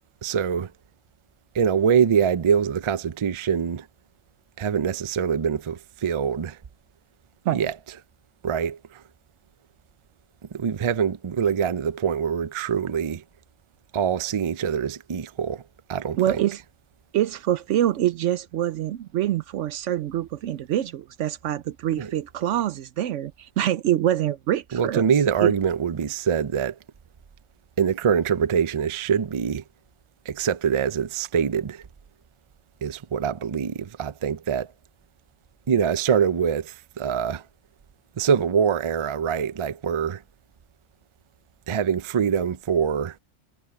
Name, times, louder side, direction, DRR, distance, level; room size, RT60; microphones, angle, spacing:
voice 1, 0.2-0.7 1.5-3.9 4.6-6.6 7.5-7.7 8.4-9.0 10.5-13.2 13.9-15.6 15.9-16.4 22.0-22.1 24.7-26.8 27.8-29.6 30.3-31.8 32.8-34.7 35.7-37.4 38.2-40.2 41.7-43.2, right 7 dB, 45° right, 0.4 m, -24 dB
voice 2, 16.2-16.6 17.1-25.0 25.4-25.5, right 12 dB, 75° right, 0.9 m, -25 dB
omnidirectional pair, 1.3 m